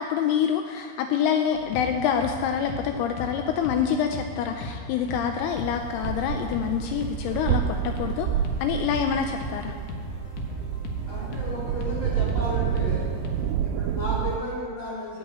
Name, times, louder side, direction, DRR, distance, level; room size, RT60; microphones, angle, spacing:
voice 1, 0.0-8.3 8.6-9.7, left 8 dB, 85° left, 5 dB, 2.6 m, -26 dB
sound 1, 1.5-13.5, left 2 dB, 65° left, 2.3 m, -38 dB
sound 2, 5.4-14.4, right 9 dB, 85° right, 2.2 m, -29 dB
voice 2, 11.1-13.0 13.6-15.2, left 1 dB, 30° left, -7 dB, 4.4 m, -33 dB
10.5 x 8.1 x 8.8 m, 2.1 s
omnidirectional pair, 4.6 m